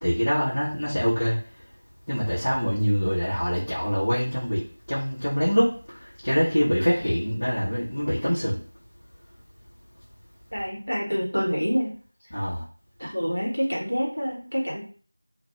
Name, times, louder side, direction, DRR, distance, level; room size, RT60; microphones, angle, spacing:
voice 1, 0.0-1.4 2.1-8.6 12.3-12.6, equal, 50° left, -10 dB, 1.0 m, -25 dB
voice 2, 10.5-12.0 12.2-12.3 13.0-14.8, equal, 85° left, -3 dB, 1.1 m, -27 dB
2.3 x 2.3 x 3.0 m, 0.42 s
figure-of-eight pair, 175°, 0 cm